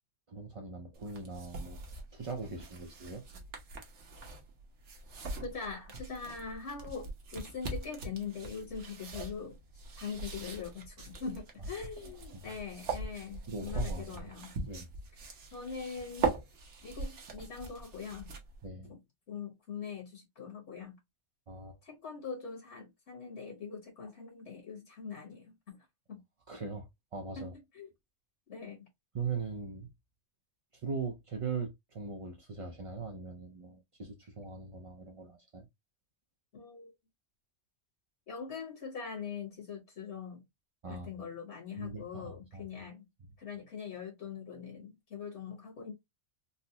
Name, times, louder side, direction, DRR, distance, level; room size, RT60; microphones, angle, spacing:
voice 1, 0.3-1.8 2.1-3.2 11.6-11.7 12.3-12.6 13.5-14.3 14.7-14.9 18.6-18.9 21.5-21.8 26.5-27.5 29.1-29.9 30.7-35.7 40.8-41.1 41.8-42.7, right 5 dB, 50° right, 0.4 m, -40 dB
sound 1, 0.9-18.7, right 3 dB, 80° right, 1.2 m, -41 dB
voice 2, 5.4-9.6 9.9-14.5 15.5-16.4 16.8-18.3 18.9-19.0 19.3-20.9 21.8-25.8 26.1-26.2 27.4-27.9 28.5-28.9 36.5-36.9 38.3-40.4 40.9-43.0 43.4-45.9, left 6 dB, 70° left, 1.4 m, -42 dB
3.9 x 2.0 x 2.7 m
omnidirectional pair, 1.2 m